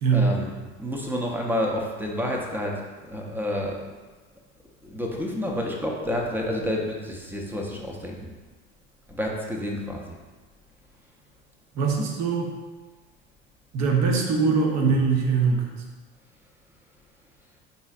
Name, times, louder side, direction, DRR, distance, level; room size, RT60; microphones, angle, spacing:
voice 1, 0.1-3.9 4.8-8.3 9.1-10.1, left 1 dB, 5° right, -1 dB, 0.6 m, -29 dB
voice 2, 11.7-12.5 13.7-15.7, right 5 dB, 50° right, 1 dB, 0.9 m, -22 dB
4.0 x 4.0 x 2.4 m, 1.3 s
figure-of-eight pair, 65°, 35 cm